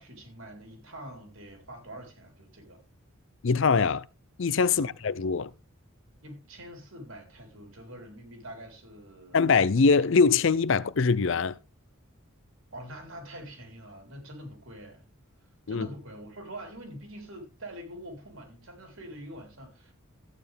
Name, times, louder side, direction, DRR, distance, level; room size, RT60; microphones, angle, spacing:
voice 1, 0.0-2.8 4.8-4.9 6.2-9.5 12.7-15.0 15.7-19.9, right 1 dB, 65° right, 3.9 m, -45 dB
voice 2, 3.4-4.0 4.4-5.5 9.3-11.6 15.7-15.9, left 5 dB, 60° left, 0.5 m, -23 dB
14.0 x 9.1 x 3.4 m
head